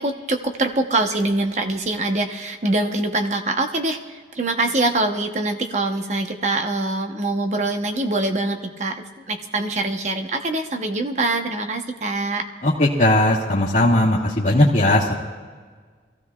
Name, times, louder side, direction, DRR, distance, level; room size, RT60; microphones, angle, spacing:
voice 1, 0.0-12.4, right 2 dB, 40° right, 5 dB, 1.0 m, -24 dB
voice 2, 12.6-15.1, left 1 dB, 40° left, -7 dB, 1.6 m, -18 dB
23.5 x 15.0 x 2.4 m, 1.5 s
head